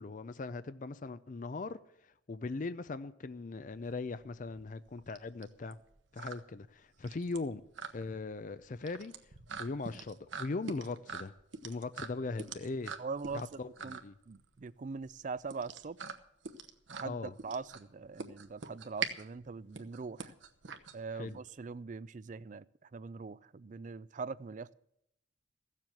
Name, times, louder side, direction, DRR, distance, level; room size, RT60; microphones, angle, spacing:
voice 1, 0.0-5.8 6.1-7.6 7.9-9.1 9.6-11.3 11.6-12.9 13.3-14.1 17.0-17.3 21.1-21.4, left 3 dB, 45° left, 0.5 m, -40 dB
sound 1, 3.7-21.5, right 6 dB, 85° right, 1.0 m, -44 dB
voice 2, 13.0-14.0 14.3-16.0 16.9-20.3 20.9-22.6 22.9-24.7, right 4 dB, 45° right, 0.4 m, -42 dB
15.5 x 7.4 x 7.7 m
head